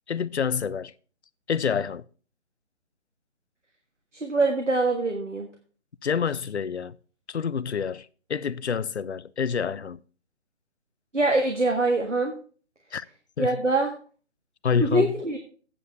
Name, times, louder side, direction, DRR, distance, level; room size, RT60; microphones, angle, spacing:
voice 1, 0.1-0.9 1.5-2.0 6.0-7.0 7.3-10.0 12.9-13.1 13.4-13.6 14.6-15.1, left 6 dB, 65° left, 0.6 m, -27 dB
voice 2, 4.1-5.5 11.1-12.3 13.4-13.9 14.8-15.4, right 2 dB, 85° right, 1.6 m, -24 dB
8.7 x 7.0 x 5.4 m
figure-of-eight pair, 145°, 36 cm